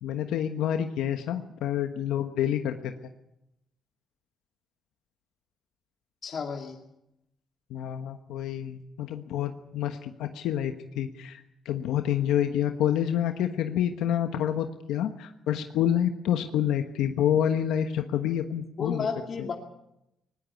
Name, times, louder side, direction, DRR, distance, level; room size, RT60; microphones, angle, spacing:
voice 1, 0.0-2.9 7.7-19.1, left 10 dB, 90° left, 6 dB, 1.3 m, -28 dB
voice 2, 6.2-6.8 18.8-19.5, left 5 dB, 50° left, 1 dB, 2.5 m, -32 dB
20.0 x 18.5 x 8.5 m, 0.85 s
cardioid pair, 90°, 0 cm